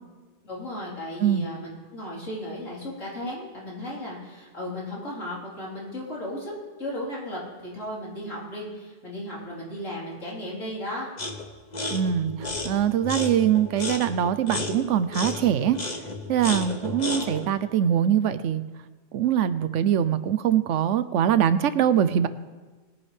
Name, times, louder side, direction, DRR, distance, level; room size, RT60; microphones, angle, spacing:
voice 1, 0.4-6.5 6.8-11.1 17.1-17.3, left 1 dB, 85° left, -6 dB, 4.4 m, -35 dB
sound 1, 11.2-11.5 11.7-17.5, left 3 dB, 35° left, 1.2 m, -33 dB
voice 2, 11.9-15.8 16.3-18.6 19.1-22.3, right 9 dB, 75° right, 14 dB, 1.0 m, -23 dB
21.5 x 9.8 x 3.4 m, 1.3 s
omnidirectional pair, 1.3 m